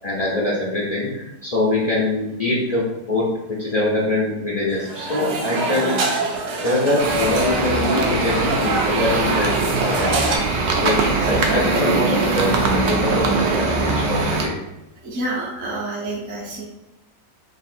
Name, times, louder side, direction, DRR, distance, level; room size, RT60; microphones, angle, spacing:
voice 1, 0.0-2.8 3.1-3.3 3.6-6.2 6.6-10.1 10.8-14.5, left 2 dB, 50° left, -6 dB, 0.4 m, -23 dB
sound 1, 4.7-10.4, right 2 dB, 70° right, 1.2 m, -25 dB
sound 2, 7.0-14.5, right 3 dB, 90° right, 0.5 m, -21 dB
voice 2, 11.3-11.6 15.0-16.6, right 2 dB, 50° right, -5 dB, 1.0 m, -28 dB
3.3 x 2.7 x 4.2 m, 0.93 s
omnidirectional pair, 1.9 m